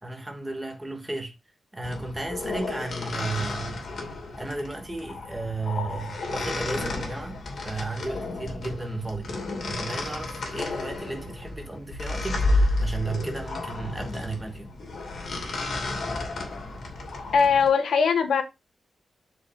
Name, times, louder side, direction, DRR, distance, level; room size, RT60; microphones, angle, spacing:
voice 1, 0.0-1.3 1.7-3.8 4.4-14.7, right 3 dB, 10° right, 1.5 m, -34 dB
sound 1, 1.8-17.7, left 2 dB, 55° left, 2.6 m, -31 dB
voice 2, 17.3-18.4, left 6 dB, 75° left, 1.2 m, -20 dB
7.9 x 5.2 x 3.6 m
wide cardioid pair, 165°, 0 cm